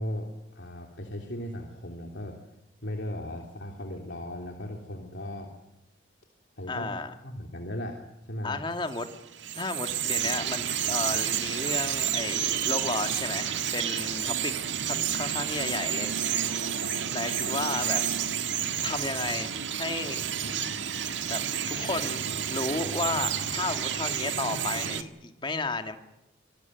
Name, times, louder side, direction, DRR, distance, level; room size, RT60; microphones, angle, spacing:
voice 1, 0.0-2.4 2.8-5.5 6.6-6.9 7.2-8.6 18.7-18.9, left 1 dB, 70° left, 2 dB, 3.1 m, -37 dB
voice 2, 6.7-7.1 8.4-9.1 9.6-14.6 14.8-16.1 16.4-16.6 17.1-18.0 18.8-20.3 21.3-21.4 21.7-22.2 22.5-26.0, left 3 dB, 25° left, 6 dB, 2.2 m, -33 dB
Bird vocalization bird call bird song, 8.9-25.0, right 9 dB, 80° right, 1.7 m, -30 dB
26.5 x 19.0 x 9.4 m, 0.90 s
head